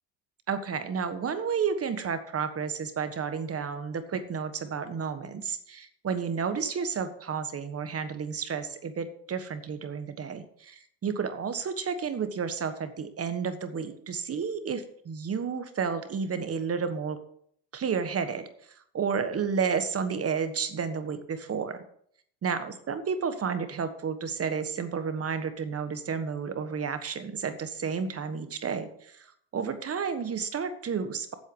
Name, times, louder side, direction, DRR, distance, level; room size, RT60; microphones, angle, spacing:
voice 1, 0.5-17.2 17.7-18.5 18.9-21.8 22.4-31.3, right 6 dB, 30° right, 10 dB, 1.4 m, -31 dB
8.3 x 7.7 x 6.9 m, 0.65 s
supercardioid pair, 105°, 45 cm